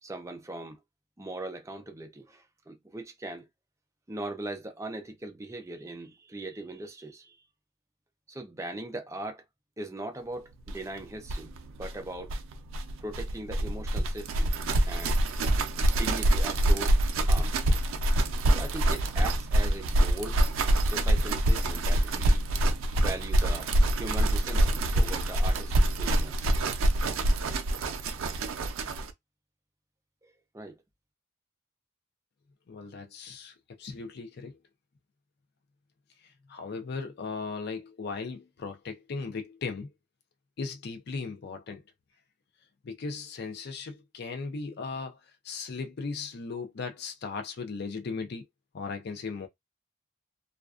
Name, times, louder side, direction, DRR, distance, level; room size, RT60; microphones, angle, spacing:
voice 1, 0.0-0.8 1.2-3.5 4.1-7.4 8.3-9.4 9.8-11.5 11.8-12.4 13.0-14.5 14.9-15.2 15.9-17.0 17.2-17.5 18.5-20.4 20.8-22.4 22.9-26.5 30.2-30.8, right 1 dB, 15° right, 0.5 m, -40 dB
sound 1, 10.7-10.8 11.0-11.1 11.2-29.1, right 1 dB, 85° right, 0.4 m, -25 dB
voice 2, 32.7-34.6 36.2-39.9 40.6-41.8 42.8-45.2 45.4-48.5 48.7-49.5, left 4 dB, 55° left, 0.5 m, -37 dB
2.4 x 2.2 x 2.4 m
head